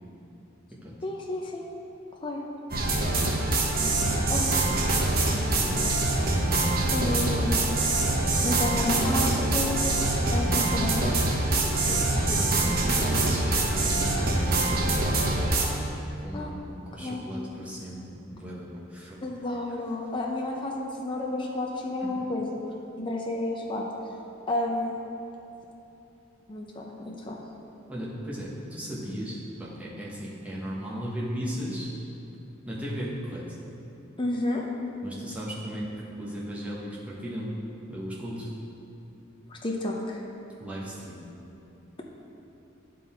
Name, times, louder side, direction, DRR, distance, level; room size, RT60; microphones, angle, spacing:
voice 1, 1.0-1.7 2.2-2.4 4.3-4.4 6.9-8.0 8.4-9.8 10.3-11.1 16.3-16.5 16.9-17.2 19.2-22.6 23.0-23.8 24.5-25.0 26.5-27.4 34.2-34.6 39.5-40.2, left 2 dB, 25° left, -1 dB, 0.5 m, -31 dB
sound 1, 2.7-15.7, right 2 dB, 45° right, 0.8 m, -24 dB
voice 2, 5.1-6.0 10.6-10.7 11.5-15.5 16.2-19.2 27.9-31.9 32.7-33.4 35.0-35.9 36.2-37.5 37.9-38.5 40.6-41.2, equal, 5° right, -7 dB, 1.1 m, -36 dB
10.0 x 3.9 x 4.3 m, 2.9 s
head